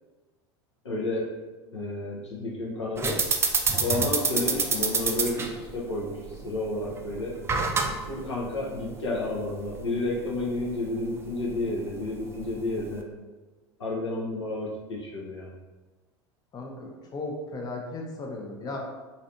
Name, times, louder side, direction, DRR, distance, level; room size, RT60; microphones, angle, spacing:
voice 1, 0.8-1.3 1.7-3.2 3.8-7.3 8.1-13.0 13.8-15.5, left 2 dB, 80° left, -4 dB, 0.7 m, -31 dB
sound 1, 3.0-13.0, right 4 dB, 15° right, 0.3 m, -30 dB
voice 2, 16.5-18.8, left 2 dB, 25° left, 1 dB, 0.6 m, -36 dB
3.1 x 2.6 x 2.6 m, 1.2 s
figure-of-eight pair, 80°, 15 cm